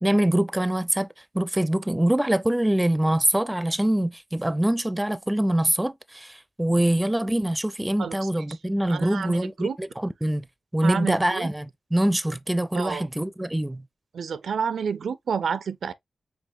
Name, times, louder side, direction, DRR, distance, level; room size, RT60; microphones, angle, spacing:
voice 1, 0.0-1.1 1.3-10.4 10.7-13.8, right 1 dB, 10° right, 0.5 m, -24 dB
voice 2, 8.9-9.8 10.8-11.5 12.7-13.0 14.1-15.9, right 6 dB, 90° right, 0.5 m, -29 dB
5.2 x 3.7 x 2.6 m
cardioid pair, 70°, 0 cm